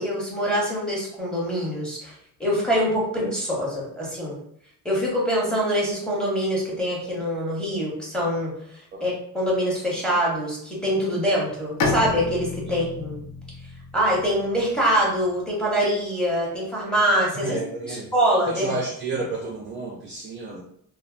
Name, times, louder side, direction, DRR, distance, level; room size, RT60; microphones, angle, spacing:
voice 1, 0.0-2.1 2.4-4.4 4.8-8.5 9.0-13.2 13.9-17.6 17.9-18.8, equal, ahead, -5 dB, 0.8 m, -24 dB
Bowed string instrument, 11.8-15.4, left 3 dB, 55° left, 0.6 m, -31 dB
voice 2, 17.4-18.1 18.5-20.6, right 3 dB, 30° right, -2 dB, 0.4 m, -31 dB
3.2 x 2.0 x 2.3 m, 0.67 s
cardioid pair, 145°, 38 cm